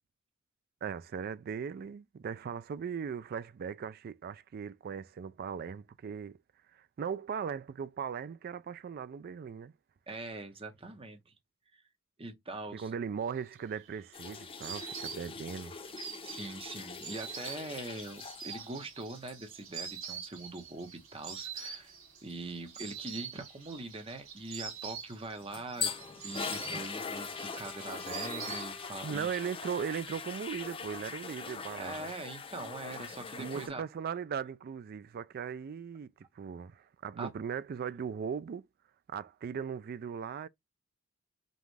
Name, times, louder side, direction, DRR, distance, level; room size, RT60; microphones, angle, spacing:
voice 1, 0.8-6.4 6.7-9.7 12.7-15.7 29.0-32.1 33.4-36.1 36.4-38.6 39.1-40.5, right 7 dB, 50° right, 0.3 m, -38 dB
voice 2, 10.1-11.3 12.2-12.9 16.2-22.0 22.2-25.9 26.2-29.3 31.8-33.8 37.2-37.3, right 2 dB, 30° right, 0.9 m, -42 dB
Insect, 13.5-29.2 29.4-30.2, right 7 dB, 90° right, 2.5 m, -45 dB
sound 1, 14.1-18.7 19.0-19.3 25.2-33.7, left 5 dB, 25° left, 0.5 m, -41 dB
Wind instrument woodwind instrument, 25.8-29.3, left 3 dB, 5° left, 1.0 m, -53 dB
5.3 x 2.4 x 3.2 m
head